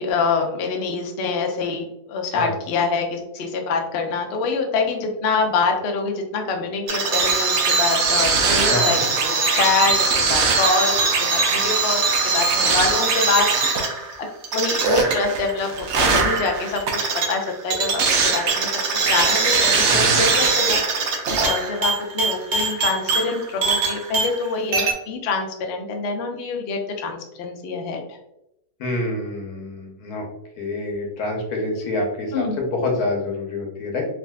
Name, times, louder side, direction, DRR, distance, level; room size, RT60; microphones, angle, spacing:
voice 1, 0.0-9.0 9.2-13.9 14.5-15.7 15.9-28.2 32.3-32.6, left 4 dB, 65° left, 2 dB, 0.6 m, -25 dB
sound 1, 6.9-24.5 24.7-24.9, right 4 dB, 65° right, 0.7 m, -21 dB
voice 2, 8.7-9.0 19.9-20.2 28.8-30.2 30.6-34.0, left 2 dB, 85° left, 0 dB, 1.3 m, -26 dB
3.5 x 2.5 x 2.2 m, 0.82 s
omnidirectional pair, 1.6 m